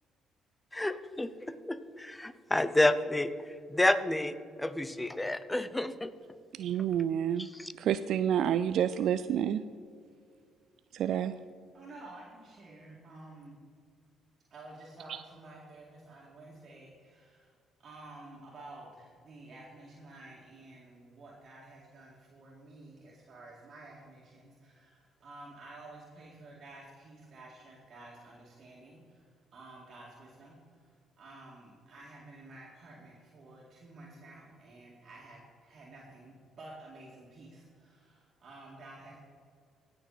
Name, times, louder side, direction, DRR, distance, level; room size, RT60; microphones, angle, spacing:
voice 1, 0.7-3.3 3.7-6.1 7.4-7.7, left 1 dB, 15° left, 13 dB, 0.8 m, -30 dB
voice 2, 6.5-7.5 7.8-9.6 10.9-11.3 15.1-15.2, right 9 dB, 70° right, 13 dB, 0.3 m, -29 dB
voice 3, 11.7-13.6 14.5-30.8 31.2-39.2, right 2 dB, 55° right, -4 dB, 2.2 m, -51 dB
17.5 x 6.7 x 4.1 m, 2.2 s
hypercardioid pair, 55°, 0 cm